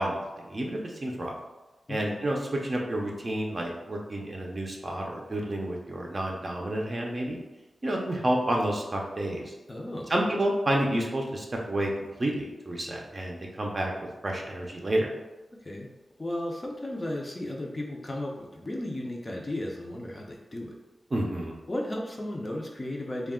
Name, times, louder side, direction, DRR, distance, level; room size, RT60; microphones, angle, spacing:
voice 1, 0.0-1.3 1.9-7.4 7.8-9.5 10.1-11.9 12.2-13.9 14.2-15.1 21.1-21.5, right 1 dB, 40° right, 0 dB, 0.5 m, -29 dB
voice 2, 9.7-10.1 15.6-15.9 16.2-20.7 21.7-23.3, left 1 dB, 30° left, -1 dB, 0.5 m, -34 dB
2.3 x 2.1 x 3.5 m, 1.1 s
wide cardioid pair, 75°, 0 cm